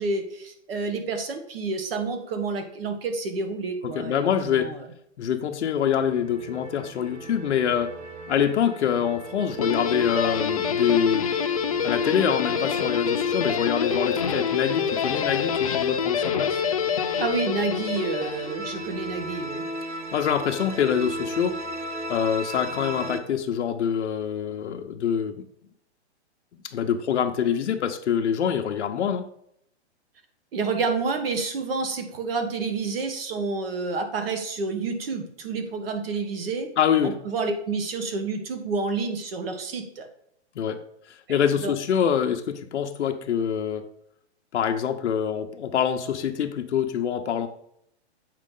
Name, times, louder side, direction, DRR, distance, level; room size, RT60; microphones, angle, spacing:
voice 1, 0.0-4.9 17.2-19.6 30.5-36.7 37.0-40.1 41.3-41.7, right 4 dB, 55° right, 6 dB, 1.4 m, -29 dB
voice 2, 3.8-4.7 5.2-8.0 8.3-11.3 11.8-16.6 20.1-21.6 22.1-25.4 26.6-29.3 36.8-37.2 40.6-40.8 41.1-43.8 44.5-47.5, left 8 dB, 85° left, 5 dB, 0.8 m, -25 dB
sound 1, 5.8-23.2, right 1 dB, 80° right, 1.1 m, -38 dB
Guitar, 9.6-18.9, left 7 dB, 35° left, 0.4 m, -26 dB
7.4 x 4.7 x 3.8 m, 0.73 s
hypercardioid pair, 170°, 34 cm